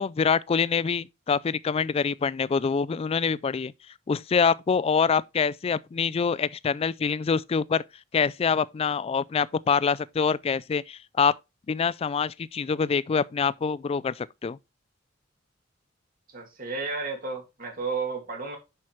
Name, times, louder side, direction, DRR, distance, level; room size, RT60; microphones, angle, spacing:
voice 1, 0.0-3.7 4.1-7.8 8.1-11.3 11.7-14.6, left 6 dB, 30° left, 0.3 m, -25 dB
voice 2, 16.3-18.6, right 4 dB, 45° right, 2.2 m, -32 dB
7.6 x 5.8 x 3.2 m
head